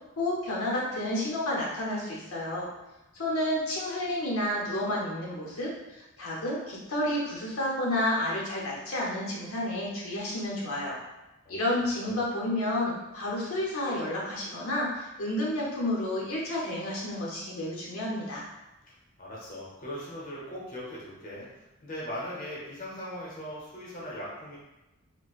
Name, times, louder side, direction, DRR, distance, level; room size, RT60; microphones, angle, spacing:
voice 1, 0.2-2.7 3.1-11.0 11.5-18.5, left 1 dB, 75° left, -4 dB, 0.8 m, -30 dB
voice 2, 11.4-12.3 18.8-24.6, equal, 40° left, -5 dB, 0.8 m, -40 dB
4.4 x 2.1 x 2.4 m, 0.99 s
head